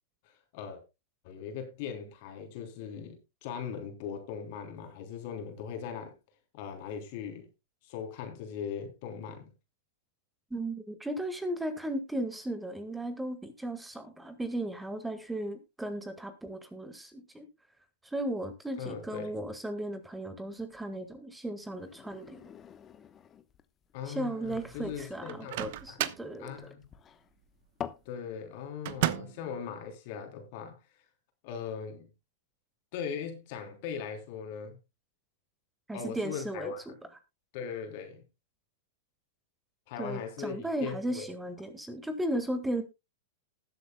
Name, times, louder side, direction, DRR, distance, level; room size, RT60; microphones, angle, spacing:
voice 1, 0.2-0.8 1.2-6.1 6.5-7.5 7.8-9.5 18.8-19.4 23.9-26.0 26.4-26.8 28.0-30.8 31.4-32.1 32.9-34.7 35.9-36.8 37.5-38.2 39.9-41.3, left 7 dB, 55° left, 3.4 m, -39 dB
voice 2, 10.5-17.5 18.0-22.4 24.0-26.5 35.9-36.7 40.0-42.8, right 1 dB, 5° right, 1.6 m, -36 dB
sound 1, 21.6-28.1, left 8 dB, 25° left, 1.0 m, -47 dB
Microwave oven, 25.3-26.3 28.8-29.5, right 14 dB, 60° right, 0.9 m, -32 dB
19.5 x 7.9 x 2.2 m
hypercardioid pair, 105°, 0 cm